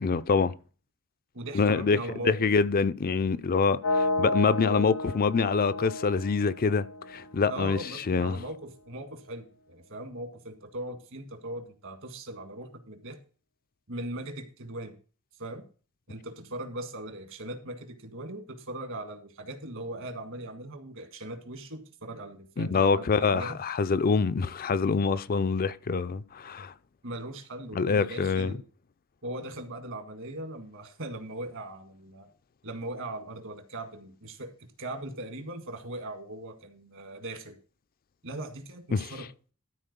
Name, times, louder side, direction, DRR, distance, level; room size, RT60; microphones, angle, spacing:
voice 1, 0.0-0.5 1.5-2.0 2.2-8.4 22.6-26.7 27.7-28.5 38.9-39.1, left 4 dB, 40° left, 0.5 m, -25 dB
voice 2, 1.3-2.5 7.5-13.2 13.9-14.9 15.4-15.6 16.1-23.6 27.0-28.6 29.2-32.3 32.6-37.6 38.2-39.3, right 1 dB, 60° right, 1.9 m, -39 dB
sound 1, 3.8-7.8, left 2 dB, 85° left, 1.6 m, -32 dB
12.5 x 4.4 x 6.7 m
head